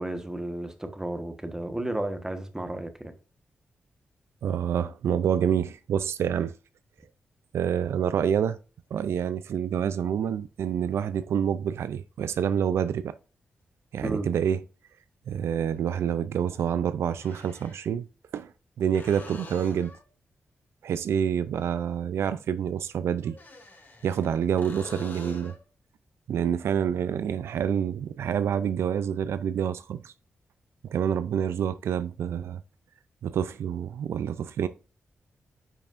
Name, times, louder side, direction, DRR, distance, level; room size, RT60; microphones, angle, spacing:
voice 1, 0.0-3.1 14.0-14.3, right 1 dB, 15° right, 1.2 m, -33 dB
voice 2, 4.4-6.6 7.5-8.6 8.9-13.1 13.9-14.6 15.3-18.1 18.3-18.5 18.8-19.9 20.8-23.4 24.0-25.6 26.3-30.1 30.8-32.6 33.2-34.7, right 8 dB, 85° right, 0.4 m, -27 dB
sound 1, 13.6-13.7 15.8-15.9 17.1-17.9 18.9-20.1 23.2-24.3 24.6-25.6 29.3-29.4, left 3 dB, 50° left, 2.2 m, -45 dB
9.2 x 5.4 x 2.5 m
cardioid pair, 70°, 4 cm